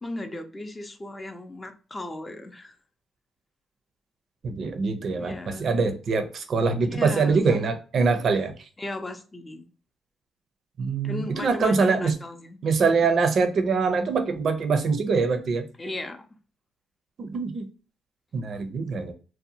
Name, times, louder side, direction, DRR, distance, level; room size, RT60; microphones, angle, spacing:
voice 1, 0.0-2.7 5.2-5.8 6.9-7.6 8.8-9.6 11.0-12.6 15.8-16.3, left 2 dB, 20° left, 0.5 m, -36 dB
voice 2, 4.4-8.5 10.8-12.1 12.6-15.7 17.2-17.7 18.3-19.1, right 4 dB, 55° right, 0.5 m, -24 dB
2.7 x 2.1 x 2.6 m
cardioid pair, 90°, 0 cm